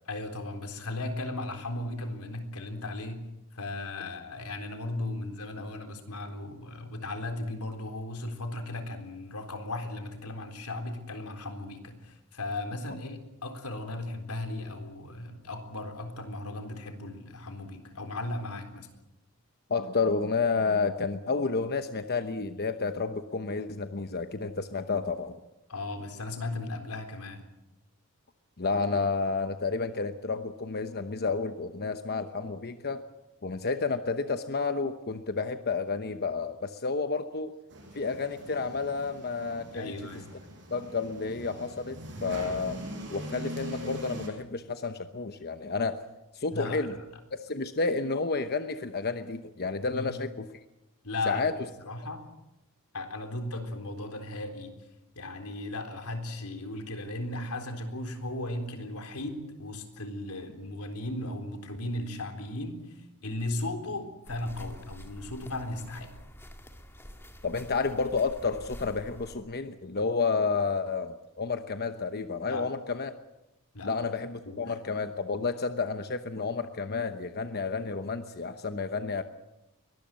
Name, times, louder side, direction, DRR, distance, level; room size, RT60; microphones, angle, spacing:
voice 1, 0.1-3.2 3.5-18.9 25.7-27.4 39.7-40.3 46.5-46.9 49.9-50.2 51.0-51.5 51.8-52.2 52.9-54.7 55.2-66.1 72.5-72.6 73.7-73.9 74.5-74.7, left 2 dB, 90° left, 6 dB, 3.9 m, -36 dB
voice 2, 19.7-25.3 28.6-33.0 33.4-37.5 37.9-39.9 40.7-42.8 43.1-46.0 46.3-47.0 47.3-50.6 51.3-51.5 67.4-73.1 73.8-79.2, left 4 dB, 45° left, 8 dB, 1.0 m, -30 dB
sound 1, 37.7-44.3, equal, 55° right, 6.6 m, -42 dB
sound 2, 64.2-69.4, equal, 10° left, 2.2 m, -47 dB
23.0 x 19.5 x 7.7 m, 0.95 s
head